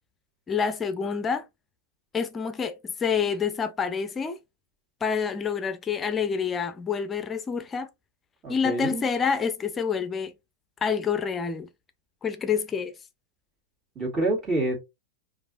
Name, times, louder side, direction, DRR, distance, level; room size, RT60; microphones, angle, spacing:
voice 1, 0.5-1.4 2.1-2.7 3.0-4.4 5.0-7.9 8.5-10.3 10.8-11.7 12.2-12.9, left 6 dB, 20° left, 0.5 m, -27 dB
voice 2, 8.4-9.0 14.0-14.8, right 2 dB, 25° right, 2.2 m, -27 dB
5.2 x 2.5 x 2.5 m
hypercardioid pair, 105°, 0 cm